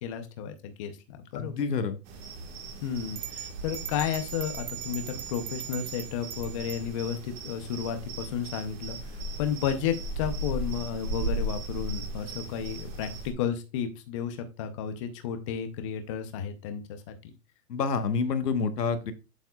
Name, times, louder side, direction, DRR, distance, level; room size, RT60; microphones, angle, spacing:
voice 1, 0.0-1.5 2.8-9.0 9.4-17.3, left 8 dB, 20° left, 8 dB, 0.6 m, -33 dB
voice 2, 1.3-2.0 17.7-19.1, left 5 dB, 80° left, 9 dB, 1.4 m, -28 dB
sound 1, 2.1-13.3, right 1 dB, 30° right, 1.6 m, -37 dB
sound 2, 3.2-6.9, right 12 dB, 60° right, 1.2 m, -40 dB
7.9 x 7.1 x 2.3 m, 0.29 s
hypercardioid pair, 145°, 48 cm